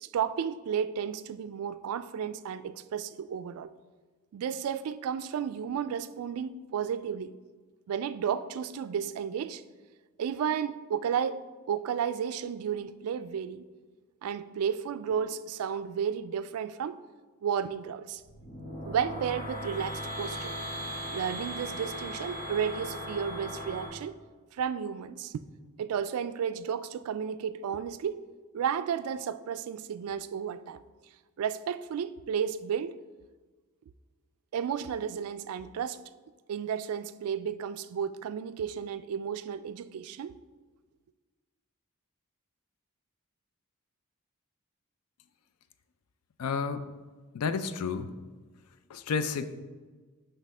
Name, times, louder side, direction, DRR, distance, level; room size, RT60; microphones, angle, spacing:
voice 1, 0.0-3.7 4.3-7.3 7.9-9.6 10.2-13.6 14.2-17.0 17.4-18.2 18.8-20.5 21.1-24.2 24.5-25.3 25.8-28.2 28.5-30.8 31.4-33.0 34.5-36.0 36.5-40.4, right 8 dB, 75° right, 0.3 m, -33 dB
sound 1, 18.2-23.9, equal, 35° left, 1.4 m, -38 dB
voice 2, 46.4-46.9 47.3-48.1 48.9-49.5, left 5 dB, 80° left, 0.4 m, -31 dB
6.3 x 3.4 x 5.3 m
head